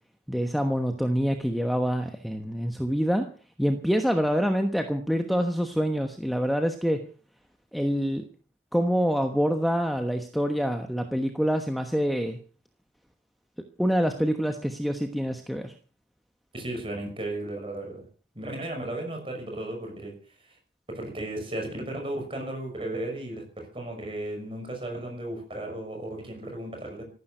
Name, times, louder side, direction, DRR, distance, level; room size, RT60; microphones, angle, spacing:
voice 1, 0.3-3.3 3.6-7.0 7.7-8.2 8.7-12.4 13.8-15.7, equal, ahead, 5 dB, 1.1 m, -26 dB
voice 2, 16.5-18.0 18.3-20.1 20.5-20.6 20.9-27.0, right 1 dB, 30° right, 3 dB, 6.0 m, -35 dB
14.5 x 12.0 x 6.6 m, 0.41 s
head